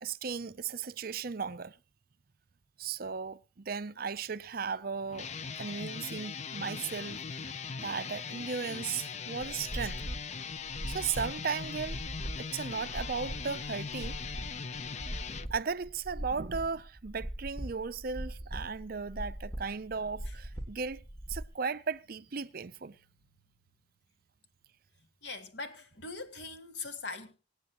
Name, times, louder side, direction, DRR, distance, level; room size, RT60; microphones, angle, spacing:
voice 1, 0.0-1.8 2.8-5.3 5.6-7.2 7.8-10.0 10.9-12.0 12.4-14.2 15.5-21.0 21.3-23.0, right 5 dB, 45° right, 0.6 m, -36 dB
sound 1, 5.1-15.5, left 5 dB, 35° left, 0.5 m, -40 dB
sound 2, 9.4-21.5, right 1 dB, 20° left, 2.7 m, -41 dB
voice 2, 25.2-27.3, left 3 dB, 60° left, 2.5 m, -41 dB
25.5 x 9.5 x 3.0 m
head